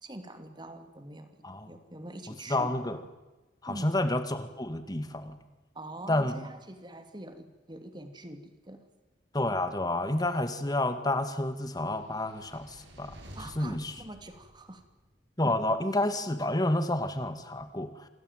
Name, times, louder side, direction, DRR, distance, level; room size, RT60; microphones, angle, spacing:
voice 1, 0.0-1.4 1.7-2.7 3.7-3.9 5.7-8.9 13.3-14.8, right 1 dB, 25° right, 8 dB, 2.9 m, -44 dB
voice 2, 2.5-3.0 3.6-5.4 6.1-6.4 9.3-13.2 13.6-13.9 15.4-18.1, left 1 dB, 20° left, 10 dB, 2.1 m, -29 dB
sound 1, 11.7-15.1, equal, 80° right, 7.6 m, -51 dB
28.0 x 19.5 x 9.3 m, 1.1 s
head